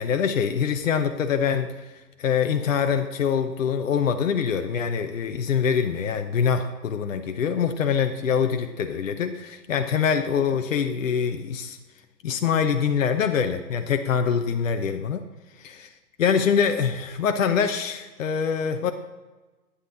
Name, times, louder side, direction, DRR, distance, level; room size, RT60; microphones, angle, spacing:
voice 1, 0.0-1.7 2.2-11.8 12.2-15.2 15.6-15.9 16.2-18.9, left 7 dB, 50° left, 8 dB, 0.8 m, -24 dB
11.5 x 9.7 x 3.7 m, 1.2 s
figure-of-eight pair, 130°, 50 cm